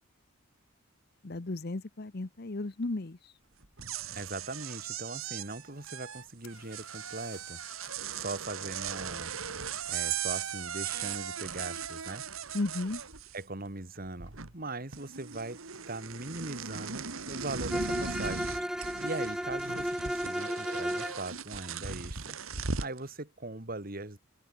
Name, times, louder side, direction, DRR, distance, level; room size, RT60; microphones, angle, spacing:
voice 1, 1.2-3.2 12.5-13.0, left 2 dB, 50° left, 0.9 m, -34 dB
sound 1, 3.6-13.7 14.0-14.7 14.9-23.0, right 6 dB, 85° right, 2.4 m, -38 dB
voice 2, 4.1-7.6 8.1-9.3 9.9-12.3 13.3-18.5 19.0-22.4 22.8-24.2, right 2 dB, 45° right, 2.3 m, -40 dB
sound 2, 6.4-8.2 8.4-8.5 11.9-12.0 12.7-12.9 13.1-13.7 15.7-15.8 16.1-16.2, left 8 dB, 85° left, 7.7 m, -58 dB
Bowed string instrument, 17.7-21.2, equal, 5° right, 1.5 m, -33 dB
open air
head